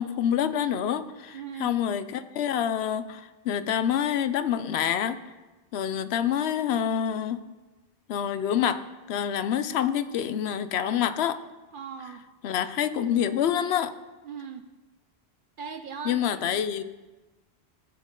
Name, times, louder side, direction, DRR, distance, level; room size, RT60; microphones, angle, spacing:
voice 1, 0.0-5.2 5.7-7.4 8.1-8.8 9.1-11.4 12.4-13.9 16.0-16.8, left 9 dB, 80° left, 12 dB, 0.8 m, -27 dB
voice 2, 1.3-1.8 11.7-12.2 14.2-14.7 15.6-16.6, right 6 dB, 60° right, 8 dB, 0.6 m, -39 dB
15.5 x 5.3 x 3.8 m, 1.2 s
omnidirectional pair, 1.1 m